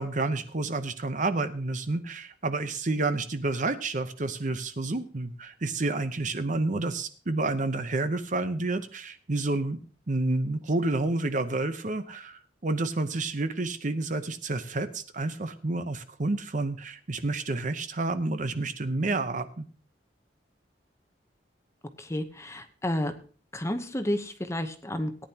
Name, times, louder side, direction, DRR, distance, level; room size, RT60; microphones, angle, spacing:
voice 1, 0.0-19.7, right 2 dB, 45° right, 10 dB, 0.8 m, -29 dB
voice 2, 22.0-23.1 23.5-25.3, left 1 dB, 15° left, 8 dB, 0.9 m, -31 dB
18.0 x 9.9 x 2.9 m, 0.40 s
head